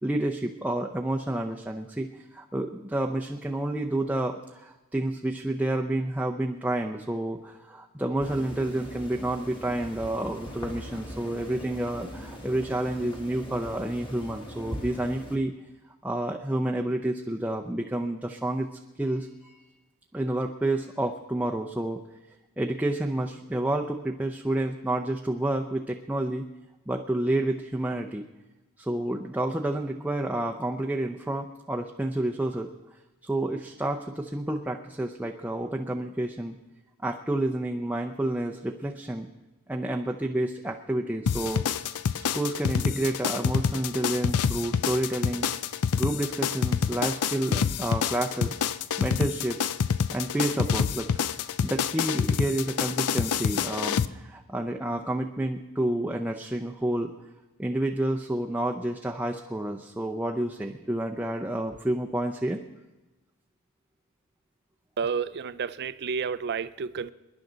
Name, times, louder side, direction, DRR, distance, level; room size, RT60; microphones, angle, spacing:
voice 1, 0.0-15.5 16.0-18.7 19.0-19.6 20.1-22.0 22.6-26.4 26.9-28.3 28.8-32.7 33.2-36.6 37.0-39.3 39.7-41.6 42.3-45.5 45.9-48.6 49.0-49.7 50.1-51.2 51.6-57.1 57.6-62.6, right 1 dB, 5° right, 0.6 m, -29 dB
sound 1, 8.2-15.4, equal, 25° left, 1.8 m, -41 dB
sound 2, 41.3-54.1, left 7 dB, 80° left, 0.5 m, -27 dB
voice 2, 65.0-67.1, right 6 dB, 50° right, 0.5 m, -30 dB
27.0 x 10.5 x 4.0 m
head